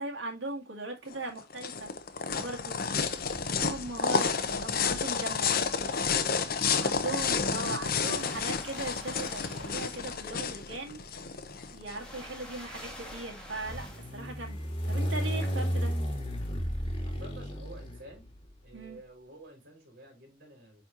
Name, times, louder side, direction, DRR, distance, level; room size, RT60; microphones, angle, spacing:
voice 1, 0.0-1.9 2.4-2.8 3.5-5.6 6.8-11.0 11.7-15.9 18.7-19.0, right 2 dB, 80° right, 2.0 m, -38 dB
sound 1, 1.1-12.0, left 5 dB, 50° left, 0.9 m, -30 dB
sound 2, 3.2-3.9 4.9-18.6, equal, 30° left, 1.9 m, -36 dB
sound 3, 7.0-7.6 8.0-10.7 11.6-14.1, left 1 dB, 5° left, 2.1 m, -48 dB
voice 2, 17.0-18.2 18.6-20.8, right 1 dB, 55° right, 4.1 m, -51 dB
9.3 x 4.3 x 2.9 m
head